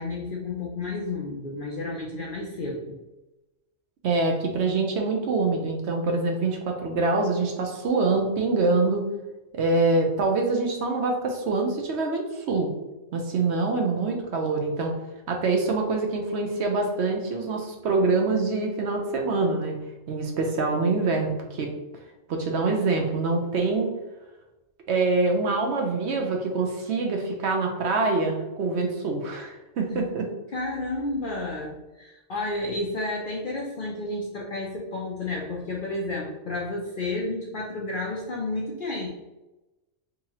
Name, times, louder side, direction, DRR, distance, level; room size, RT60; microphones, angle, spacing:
voice 1, 0.0-3.0 29.9-30.0 30.5-39.1, left 2 dB, 55° left, -2 dB, 0.6 m, -31 dB
voice 2, 4.0-9.1 9.5-12.7 13.1-14.9 15.3-19.8 20.1-21.7 22.3-23.9 24.9-30.3, right 3 dB, 65° right, 2 dB, 0.8 m, -25 dB
3.8 x 2.7 x 2.9 m, 1.0 s
omnidirectional pair, 1.3 m